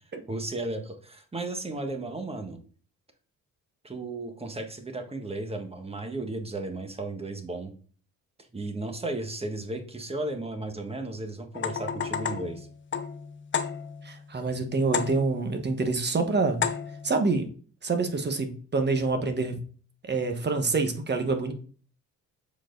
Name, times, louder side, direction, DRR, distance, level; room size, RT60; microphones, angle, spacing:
voice 1, 0.3-2.6 3.8-7.7 8.5-12.7, right 2 dB, 20° right, 6 dB, 1.5 m, -34 dB
sound 1, 11.5-14.2 14.9-15.5 16.6-17.2, left 7 dB, 40° left, 0.8 m, -32 dB
voice 2, 14.0-16.6 17.0-17.5 17.8-19.5 20.0-21.5, right 3 dB, 35° right, 6 dB, 1.4 m, -26 dB
7.3 x 4.7 x 3.9 m, 0.41 s
cardioid pair, 90°, 30 cm